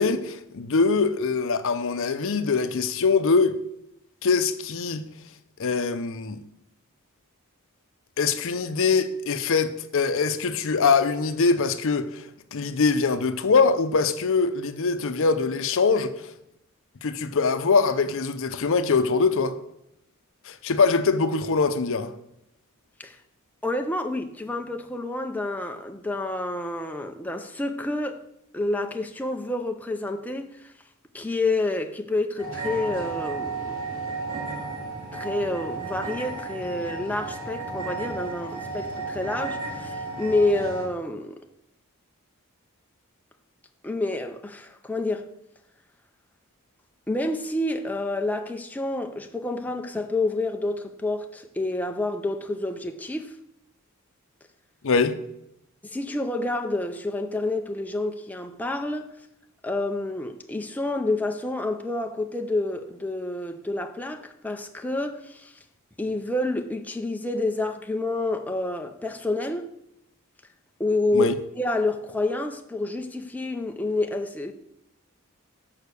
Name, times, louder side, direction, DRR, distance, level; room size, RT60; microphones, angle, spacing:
voice 1, 0.0-3.6 4.2-5.0 5.6-6.4 8.2-16.1 17.0-19.6 20.5-22.1 54.8-55.2 71.1-71.3, left 4 dB, 60° left, 0.6 m, -23 dB
voice 2, 23.6-28.2 28.5-30.7 31.1-33.8 35.1-41.4 43.8-45.3 47.1-53.3 55.8-59.1 59.6-65.5 66.0-69.7 70.8-74.5, left 2 dB, 5° left, 0.4 m, -28 dB
sound 1, 32.4-40.9, right 3 dB, 75° right, 3.4 m, -33 dB
6.5 x 5.8 x 6.7 m
head